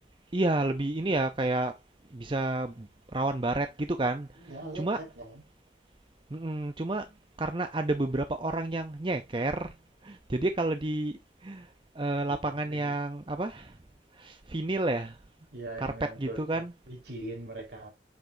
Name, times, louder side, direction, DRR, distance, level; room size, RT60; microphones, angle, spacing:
voice 1, 0.3-1.8 2.1-4.4 4.7-5.0 6.3-7.1 7.4-9.8 10.0-13.8 14.1-15.2 15.8-15.9 16.2-16.7, right 2 dB, 25° right, 0.6 m, -30 dB
voice 2, 4.4-5.4 12.2-12.9 15.5-17.9, right 2 dB, 70° right, 4.1 m, -42 dB
8.4 x 6.1 x 2.7 m
head